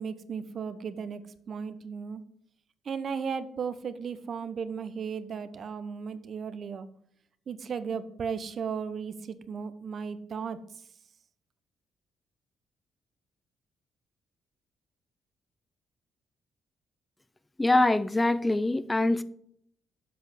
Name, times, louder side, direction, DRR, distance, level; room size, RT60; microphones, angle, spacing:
voice 1, 0.0-2.2 2.8-6.9 7.5-10.6, right 6 dB, 55° right, 12 dB, 0.8 m, -35 dB
voice 2, 17.6-19.2, left 2 dB, 15° left, 14 dB, 0.5 m, -24 dB
7.7 x 5.7 x 7.4 m, 0.68 s
cardioid pair, 90°, 0 cm